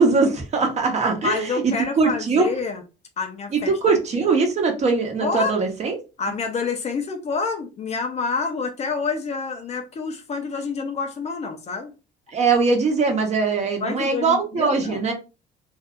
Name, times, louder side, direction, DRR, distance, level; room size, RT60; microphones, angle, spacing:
voice 1, 0.0-2.5 3.5-5.9 12.3-15.1, right 4 dB, 40° right, 1.0 m, -21 dB
voice 2, 1.1-2.8 3.2-3.7 5.2-5.6 6.2-11.9 13.8-15.0, left 4 dB, 40° left, 0.6 m, -28 dB
2.6 x 2.3 x 3.6 m
cardioid pair, 110°, 17 cm